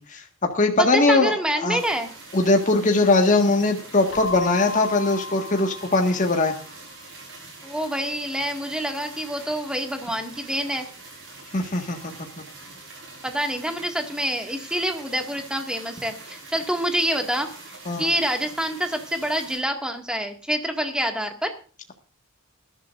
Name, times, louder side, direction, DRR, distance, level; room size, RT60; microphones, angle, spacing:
voice 1, 0.1-1.3 1.6-1.8 2.3-6.5 11.5-12.4 17.8-18.1, left 2 dB, 40° left, 3 dB, 1.7 m, -21 dB
voice 2, 0.9-2.1 7.6-10.9 13.2-17.5 18.0-21.5, equal, 5° right, 4 dB, 2.0 m, -26 dB
sound 1, 1.8-19.6, right 3 dB, 60° right, 7.1 m, -44 dB
Keyboard (musical), 4.1-6.8, left 4 dB, 65° left, 2.9 m, -35 dB
20.0 x 12.0 x 2.6 m, 0.39 s
head